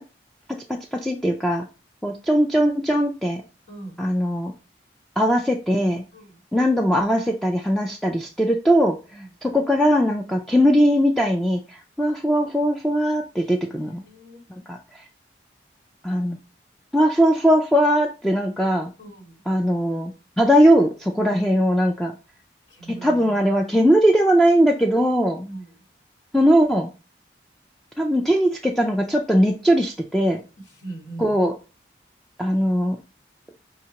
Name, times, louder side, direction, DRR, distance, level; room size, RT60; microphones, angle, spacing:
voice 1, 0.7-1.7 2.0-3.4 4.0-4.5 5.2-6.0 6.5-9.0 9.4-14.0 14.7-15.0 16.0-16.4 16.9-18.9 19.5-22.1 22.9-25.5 26.3-26.9 28.0-30.4 31.2-31.5 32.4-33.0, equal, ahead, 1 dB, 0.3 m, -20 dB
voice 2, 3.7-4.0 6.1-6.4 9.1-9.3 13.7-14.4 19.0-19.5 22.7-23.5 25.4-25.8 30.6-31.4, right 2 dB, 75° left, -4 dB, 1.9 m, -40 dB
5.6 x 2.8 x 2.9 m, 0.32 s
head